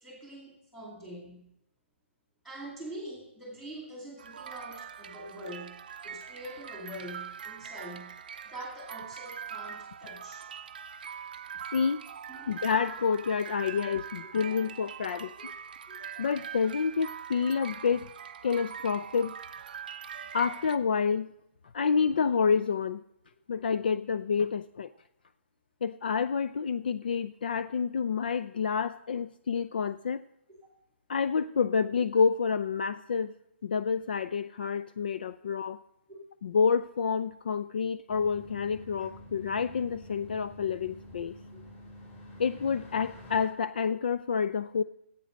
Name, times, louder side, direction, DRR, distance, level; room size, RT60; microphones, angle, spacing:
voice 1, 0.0-1.5 2.4-5.7 6.0-8.1 8.5-10.5 12.3-12.5 14.5-14.6 15.9-16.0 39.0-39.1 41.5-41.7, right 1 dB, ahead, -2 dB, 2.2 m, -44 dB
sound 1, 4.2-20.8, right 8 dB, 40° right, 0.6 m, -43 dB
voice 2, 12.5-15.3 16.2-18.1 18.4-19.3 20.3-21.3 21.7-23.0 23.5-24.9 25.8-30.2 31.1-33.3 33.6-35.8 36.4-41.3 42.4-44.8, left 6 dB, 45° left, 14 dB, 0.4 m, -28 dB
sound 2, 38.1-43.5, left 1 dB, 20° left, 2.5 m, -48 dB
15.0 x 8.2 x 5.2 m, 0.80 s
hypercardioid pair, 180°, 7 cm